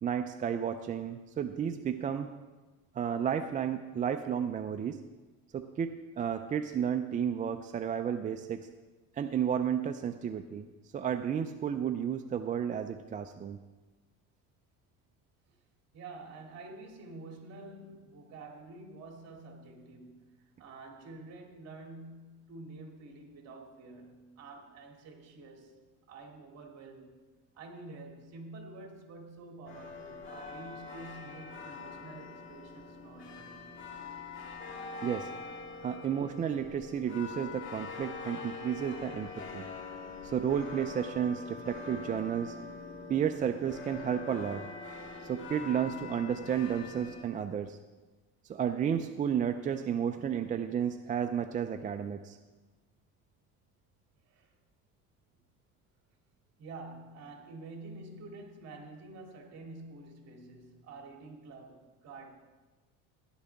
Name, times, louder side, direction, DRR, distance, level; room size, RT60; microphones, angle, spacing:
voice 1, 0.0-2.3 2.9-5.0 5.5-8.7 9.2-10.7 10.9-13.6 35.0-35.3 35.8-39.7 40.2-42.6 43.1-44.6 45.2-47.8 48.5-52.4, right 8 dB, 25° right, 0.4 m, -32 dB
voice 2, 15.9-25.8 26.1-27.2 27.5-33.6 54.2-54.5 56.6-62.3, right 2 dB, 45° right, 2.7 m, -48 dB
sound 1, 29.7-47.3, left 4 dB, 35° left, 1.7 m, -44 dB
15.5 x 11.0 x 3.5 m
cardioid pair, 130°, 35 cm